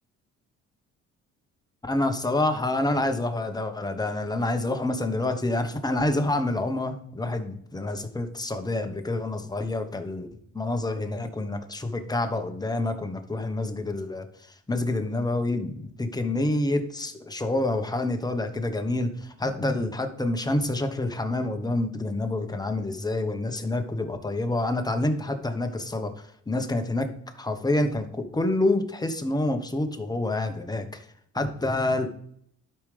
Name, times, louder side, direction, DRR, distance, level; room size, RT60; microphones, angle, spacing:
voice 1, 1.8-10.3 10.5-14.2 14.7-27.1 27.4-31.1 31.3-32.1, left 2 dB, 15° left, 6 dB, 1.1 m, -27 dB
12.0 x 5.1 x 3.4 m, 0.68 s
cardioid pair, 90°, 30 cm